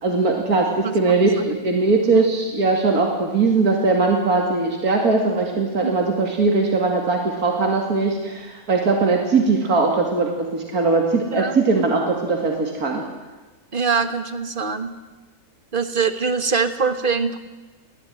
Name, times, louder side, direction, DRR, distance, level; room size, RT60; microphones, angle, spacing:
voice 1, 0.0-13.0, right 3 dB, 80° right, 1 dB, 2.9 m, -20 dB
voice 2, 13.7-14.9 15.7-17.4, right 5 dB, 35° right, 9 dB, 1.6 m, -23 dB
23.0 x 16.5 x 9.2 m, 1.2 s
omnidirectional pair, 1.5 m